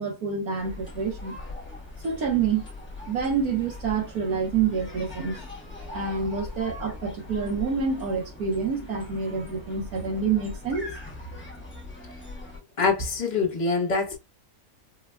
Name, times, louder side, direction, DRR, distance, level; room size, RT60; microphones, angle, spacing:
voice 1, 0.0-1.4 2.0-2.6 3.1-5.4 5.9-10.9, right 5 dB, 80° right, 1.5 m, -27 dB
sound 1, 0.6-12.6, left 2 dB, 10° left, 0.9 m, -41 dB
voice 2, 12.8-14.2, left 4 dB, 35° left, 1.0 m, -24 dB
4.5 x 2.7 x 2.2 m
omnidirectional pair, 1.6 m